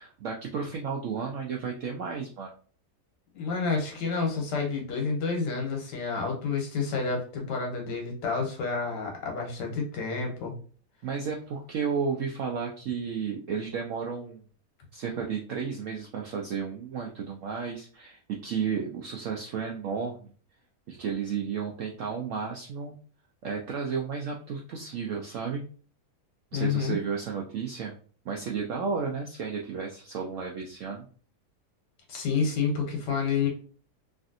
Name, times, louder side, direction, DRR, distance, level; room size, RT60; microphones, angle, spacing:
voice 1, 0.0-2.5 11.0-14.4 14.9-20.3 20.9-23.0 23.4-25.6 26.5-27.9 28.3-31.1, right 6 dB, 75° right, 0 dB, 0.7 m, -33 dB
voice 2, 3.3-10.5 26.5-27.0 32.1-33.5, left 5 dB, 80° left, 2 dB, 1.6 m, -29 dB
3.2 x 2.5 x 2.6 m, 0.41 s
omnidirectional pair, 1.8 m